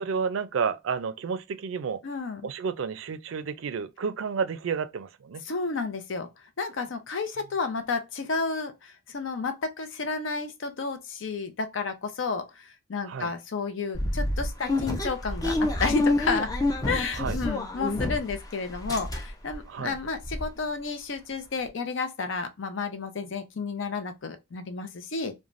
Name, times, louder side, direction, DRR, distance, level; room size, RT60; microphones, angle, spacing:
voice 1, 0.0-2.0 2.4-5.4 13.0-13.3 17.1-17.4 19.7-20.0, right 6 dB, 80° right, 0.4 m, -31 dB
voice 2, 2.0-2.4 5.5-6.3 6.6-16.5 16.9-25.3, left 4 dB, 70° left, 0.6 m, -31 dB
sound 1, 13.9-18.4 18.7-19.6 19.9-20.0 20.2-20.5, left 1 dB, 20° left, 0.4 m, -28 dB
3.2 x 2.2 x 2.5 m
head